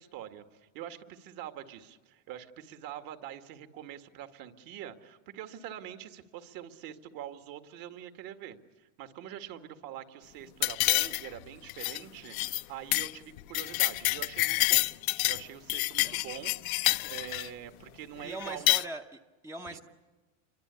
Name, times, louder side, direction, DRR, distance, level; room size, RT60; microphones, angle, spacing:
voice 1, 0.0-14.8 15.3-16.8 17.1-18.7 19.7-19.8, right 11 dB, 55° right, 7 dB, 2.3 m, -44 dB
sound 1, 10.6-11.4 11.7-12.0 12.3-12.6 12.9-13.1 13.4-15.4 15.7-17.5 18.4-18.8, left 21 dB, 75° left, 0.9 m, -28 dB
voice 2, 18.2-19.8, right 2 dB, 5° right, 5 dB, 0.8 m, -41 dB
28.5 x 24.0 x 8.5 m, 1.3 s
supercardioid pair, 135°, 42 cm